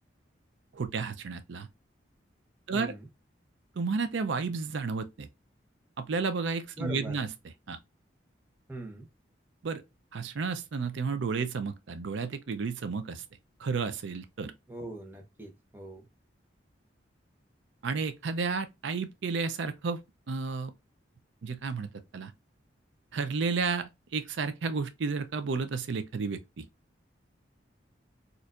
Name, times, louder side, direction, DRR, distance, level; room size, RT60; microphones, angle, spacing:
voice 1, 0.7-1.7 2.7-2.9 3.8-5.3 6.0-7.3 7.7-7.8 9.6-9.8 10.1-13.2 13.6-14.5 17.8-20.0 20.3-20.7 21.4-22.3 23.1-26.7, right 4 dB, 75° right, 0.5 m, -32 dB
voice 2, 2.7-3.1 6.8-7.2 8.7-9.1 14.7-16.0, right 1 dB, 10° right, 0.8 m, -41 dB
4.3 x 2.5 x 2.4 m
head